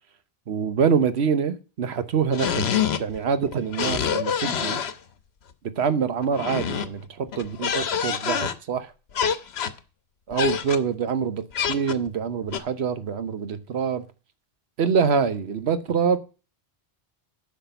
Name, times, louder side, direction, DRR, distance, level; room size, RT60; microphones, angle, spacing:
voice 1, 0.5-2.6 3.0-4.8 5.8-8.9 10.3-14.0 14.8-16.2, right 6 dB, 90° right, 1.2 m, -25 dB
sound 1, 2.3-3.2 3.4-4.9 6.2-7.0 7.3-8.5 9.2-9.8 10.3-10.8 11.5-12.1 12.5-12.6, left 8 dB, 85° left, 1.1 m, -26 dB
10.0 x 6.0 x 6.8 m
omnidirectional pair, 1.1 m